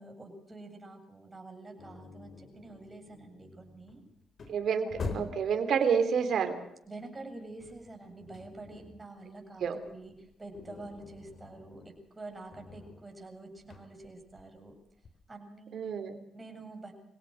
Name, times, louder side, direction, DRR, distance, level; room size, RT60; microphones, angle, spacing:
voice 1, 0.0-4.0 4.8-5.2 6.9-14.8 15.3-15.9 16.3-16.9, right 2 dB, 20° right, 3 dB, 7.9 m, -47 dB
sound 1, 1.8-5.6 7.0-9.1 9.4-15.2, left 3 dB, 50° left, 3.8 m, -45 dB
voice 2, 4.5-4.9 5.1-6.5 9.6-9.8 15.7-16.2, right 6 dB, 65° right, 8 dB, 3.4 m, -28 dB
25.0 x 17.5 x 6.5 m, 0.76 s
cardioid pair, 90°, 0 cm